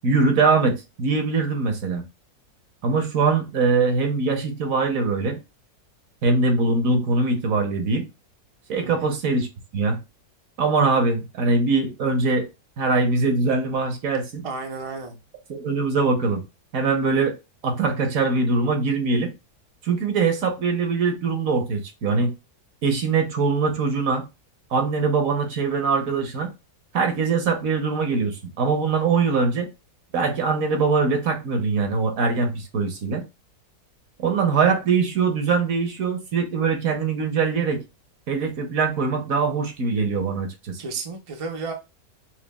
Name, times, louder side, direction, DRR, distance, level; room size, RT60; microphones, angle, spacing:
voice 1, 0.0-2.0 2.8-5.4 6.2-8.1 8.7-9.5 9.7-10.0 10.6-12.5 12.8-14.4 15.5-16.4 16.7-17.4 17.6-19.3 19.8-22.3 22.8-24.3 24.7-26.5 26.9-29.7 30.1-33.2 34.2-37.8 38.3-40.8, right 4 dB, 60° right, 1.2 m, -22 dB
voice 2, 8.8-9.2 14.4-15.2 40.8-41.7, right 4 dB, 40° right, 0.4 m, -32 dB
6.0 x 2.3 x 2.2 m
omnidirectional pair, 1.7 m